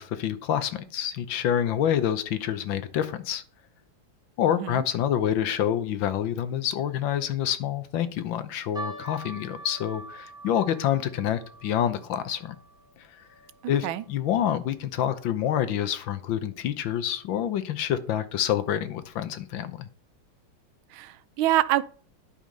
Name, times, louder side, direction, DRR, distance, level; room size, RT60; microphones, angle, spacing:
voice 1, 0.0-3.4 4.4-12.6 13.0-13.1 13.7-19.9, left 10 dB, 70° left, 1.6 m, -27 dB
sound 1, 8.7-15.2 15.5-15.6 16.4-16.6 17.2-17.3 17.7-17.9, right 2 dB, ahead, 1.5 m, -45 dB
voice 2, 13.6-14.0 20.9-21.8, right 14 dB, 85° right, 1.4 m, -26 dB
10.5 x 5.5 x 5.3 m
omnidirectional pair, 2.2 m